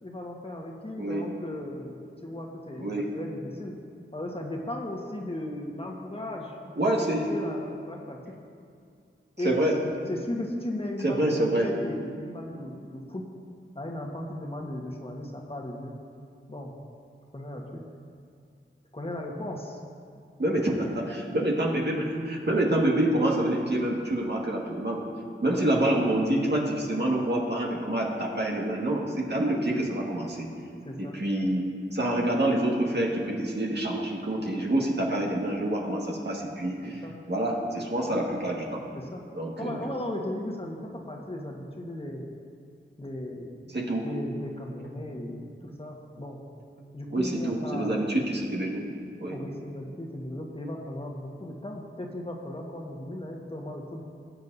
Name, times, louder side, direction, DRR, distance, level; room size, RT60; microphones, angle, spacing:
voice 1, 0.0-3.7 4.1-6.6 7.3-8.2 9.4-9.6 10.1-13.2 13.7-15.9 16.5-16.7 17.3-17.8 18.9-19.8 20.5-20.6 22.8-22.9 25.5-25.7 30.8-31.1 36.8-37.1 38.9-39.2 39.6-42.3 43.0-43.6 44.0-45.5 45.8-46.4 46.9-48.0 49.3-54.0, left 1 dB, 25° left, -1 dB, 1.5 m, -36 dB
voice 2, 2.8-3.1 6.8-7.3 9.4-9.7 11.0-11.7 20.4-25.1 25.4-30.5 31.0-38.8 39.3-39.9 43.7-44.1 47.1-48.8 49.2-49.4, right 1 dB, 55° right, -2 dB, 1.9 m, -27 dB
19.0 x 7.8 x 2.7 m, 2.4 s
wide cardioid pair, 50°, 21 cm